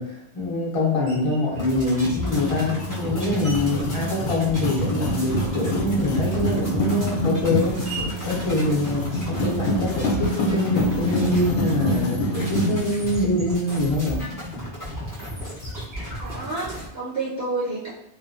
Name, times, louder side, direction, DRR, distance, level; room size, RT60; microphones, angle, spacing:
voice 1, 0.0-7.7 8.3-14.2, left 1 dB, 35° left, -4 dB, 0.7 m, -24 dB
Screech, 1.1-1.5 2.3-5.0 5.3-9.6, right 3 dB, 35° right, 0.5 m, -43 dB
sound 1, 1.5-16.9, equal, 20° right, 1.0 m, -34 dB
sound 2, 2.3-12.8, equal, 85° left, 0.9 m, -26 dB
voice 2, 16.2-17.9, right 3 dB, 65° right, -7 dB, 0.9 m, -29 dB
2.6 x 2.2 x 2.5 m, 0.78 s
omnidirectional pair, 1.1 m